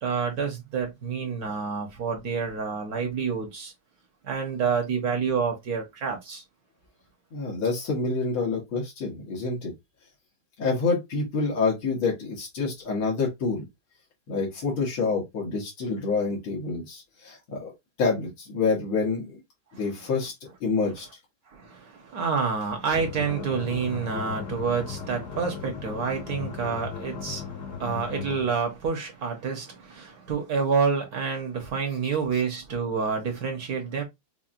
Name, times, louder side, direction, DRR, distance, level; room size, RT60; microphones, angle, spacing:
voice 1, 0.0-3.7 4.2-6.4 21.5-34.0, right 5 dB, 55° right, 1.3 m, -28 dB
voice 2, 7.3-9.7 10.6-13.6 14.3-17.7 18.0-19.4 19.7-20.3 20.6-21.1, left 4 dB, 85° left, 2.3 m, -27 dB
sound 1, 22.9-28.6, left 6 dB, 65° left, 1.1 m, -37 dB
5.7 x 2.2 x 2.5 m
omnidirectional pair, 2.2 m